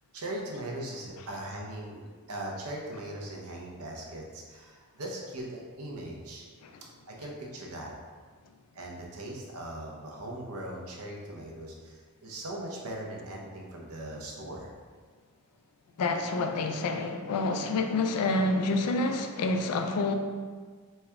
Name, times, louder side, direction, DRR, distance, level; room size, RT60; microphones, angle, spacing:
voice 1, 0.1-2.0 2.3-6.5 7.1-7.9 8.7-14.7, right 1 dB, 80° right, -1 dB, 0.7 m, -39 dB
voice 2, 16.0-20.1, left 2 dB, 90° left, 5 dB, 0.4 m, -28 dB
4.2 x 2.2 x 3.5 m, 1.5 s
head